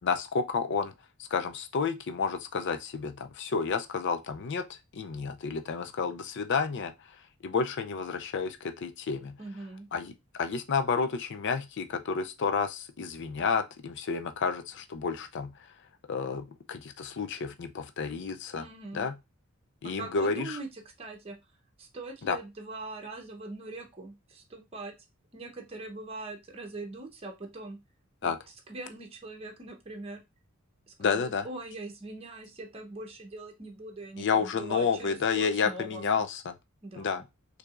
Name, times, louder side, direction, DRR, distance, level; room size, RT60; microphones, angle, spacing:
voice 1, 0.0-0.9 1.3-7.2 7.4-9.4 9.9-10.1 10.4-15.7 16.1-18.7 18.9-19.1 19.8-20.6 22.2-22.4 28.2-28.4 31.0-31.5 34.2-36.5 37.0-37.2, left 5 dB, 60° left, 0.5 m, -30 dB
voice 2, 9.4-9.9 18.6-19.1 19.8-21.4 21.8-24.9 25.3-27.8 28.2-28.3 28.7-30.2 30.9-36.0 36.8-37.2, right 2 dB, 30° right, 0.9 m, -42 dB
4.6 x 2.7 x 2.5 m
head